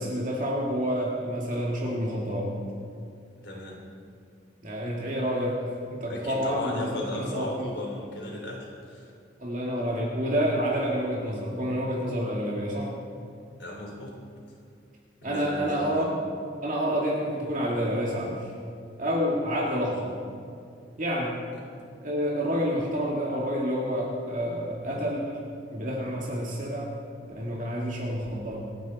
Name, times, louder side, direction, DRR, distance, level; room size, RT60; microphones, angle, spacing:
voice 1, 0.0-2.5 4.6-5.6 5.9-7.7 9.4-12.9 15.2-16.2 16.6-18.5 19.0-20.1 21.0-21.4 22.0-25.4 25.7-26.9 27.4-28.6, equal, 45° right, -3 dB, 2.1 m, -28 dB
voice 2, 3.4-3.8 6.1-9.1 13.6-14.2 15.2-16.1, left 1 dB, 70° left, -1 dB, 3.5 m, -36 dB
27.0 x 9.3 x 4.2 m, 2.3 s
head